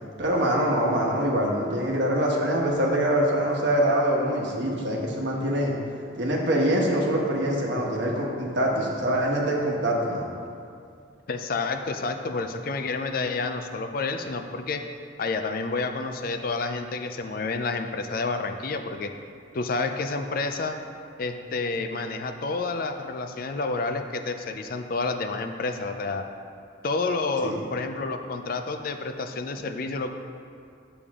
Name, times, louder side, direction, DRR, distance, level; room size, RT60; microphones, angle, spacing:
voice 1, 0.2-5.7 6.2-10.3 27.4-27.6, right 1 dB, 65° right, -2 dB, 1.3 m, -24 dB
voice 2, 11.3-14.8 15.2-19.1 19.5-20.8 21.2-26.3 26.8-30.1, left 3 dB, 50° left, 7 dB, 0.4 m, -29 dB
8.4 x 7.0 x 3.6 m, 2.3 s
head